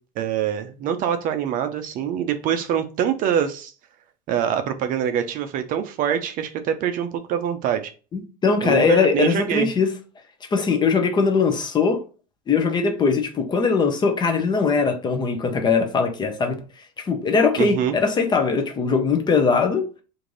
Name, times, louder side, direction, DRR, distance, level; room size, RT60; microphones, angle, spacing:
voice 1, 0.2-3.7 4.3-7.9 8.6-9.7 17.6-18.0, right 9 dB, 45° right, 0.5 m, -24 dB
voice 2, 8.1-9.9 10.5-12.0 12.5-16.5 17.0-19.9, left 5 dB, 20° left, 0.5 m, -20 dB
3.1 x 2.6 x 3.7 m
supercardioid pair, 135°, 20 cm